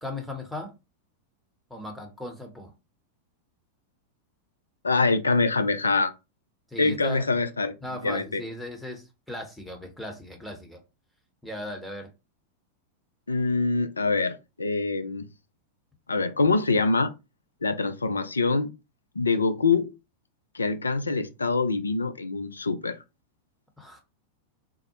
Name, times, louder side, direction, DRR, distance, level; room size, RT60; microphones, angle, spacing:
voice 1, 0.0-0.7 1.7-2.7 6.7-7.3 7.8-10.8 11.4-12.1 23.8-24.0, left 1 dB, ahead, 0.7 m, -37 dB
voice 2, 4.8-6.1 6.8-7.7 8.0-8.4 13.3-15.3 16.1-17.1 17.6-18.7 19.2-19.9 20.5-23.0, left 3 dB, 75° left, 0.3 m, -24 dB
3.5 x 2.0 x 2.9 m
figure-of-eight pair, 90°, 0 cm